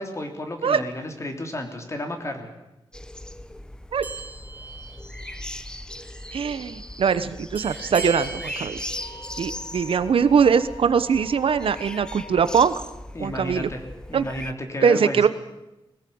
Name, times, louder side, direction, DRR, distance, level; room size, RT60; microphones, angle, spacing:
voice 1, 0.0-2.5 13.1-13.8 14.1-15.2, left 1 dB, 30° left, 4 dB, 3.3 m, -32 dB
sound 1, 2.9-14.5, left 1 dB, 10° left, 0.8 m, -39 dB
sound 2, 4.0-5.7 6.0-6.2 7.6-9.3, right 4 dB, 20° right, 3.0 m, -39 dB
voice 2, 6.3-8.8 9.4-12.7 13.2-13.7 14.1-14.2 14.8-15.3, right 6 dB, 70° right, 12 dB, 1.0 m, -21 dB
Wind instrument woodwind instrument, 9.0-12.8, left 3 dB, 55° left, 2.1 m, -45 dB
21.0 x 18.5 x 8.7 m, 0.97 s
wide cardioid pair, 150°, 10 cm